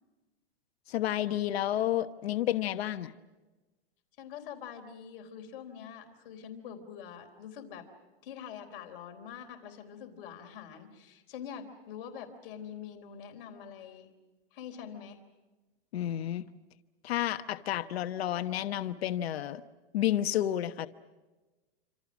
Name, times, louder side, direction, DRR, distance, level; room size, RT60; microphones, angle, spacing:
voice 1, 0.9-3.1 15.9-16.4 17.0-19.6 19.9-20.9, left 12 dB, 75° left, 10 dB, 1.1 m, -30 dB
voice 2, 4.2-7.9 8.2-14.1 14.5-15.2, left 8 dB, 60° left, 5 dB, 3.8 m, -45 dB
28.0 x 26.5 x 6.2 m, 1.2 s
supercardioid pair, 145°, 31 cm